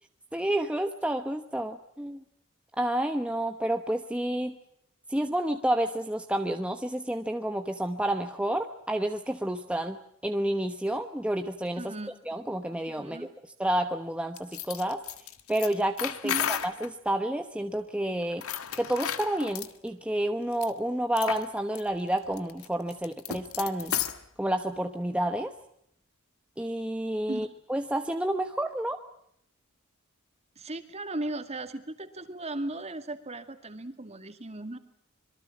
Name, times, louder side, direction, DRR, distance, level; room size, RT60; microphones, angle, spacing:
voice 1, 0.3-2.2 2.8-4.6 5.1-10.0 10.2-11.9 12.3-13.3 13.6-15.0 15.5-18.4 18.8-23.9 24.4-25.5 26.6-29.0, right 1 dB, 5° right, 6 dB, 1.1 m, -30 dB
voice 2, 11.8-12.1 12.9-13.3 16.2-16.6 27.3-27.4 30.6-34.8, right 2 dB, 30° right, 9 dB, 2.3 m, -37 dB
sound 1, 14.4-16.9 18.3-19.7 20.5-20.7 21.2-21.5 21.7-21.8 22.2-24.2, left 9 dB, 80° left, 1.7 m, -33 dB
26.5 x 23.0 x 7.4 m, 0.72 s
head